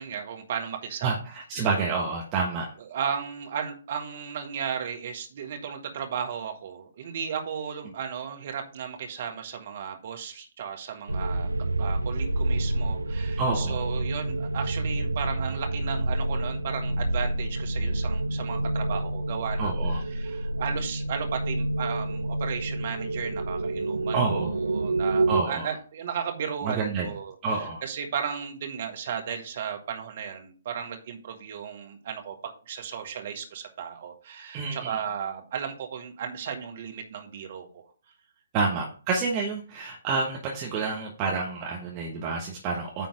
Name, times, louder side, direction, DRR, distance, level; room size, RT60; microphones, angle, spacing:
voice 1, 0.0-1.2 2.8-11.5 11.8-32.3 32.7-37.8 38.7-38.8, right 7 dB, 45° right, 3 dB, 1.8 m, -35 dB
voice 2, 1.0-2.7 13.4-13.8 19.6-20.0 24.1-24.5 25.3-25.7 26.6-27.1 27.4-27.8 34.5-35.0 38.5-43.1, right 4 dB, 25° right, -2 dB, 1.5 m, -28 dB
sound 1, 11.1-25.4, right 2 dB, 80° right, 0.7 m, -28 dB
9.6 x 3.8 x 5.0 m, 0.38 s
figure-of-eight pair, 130°, 0 cm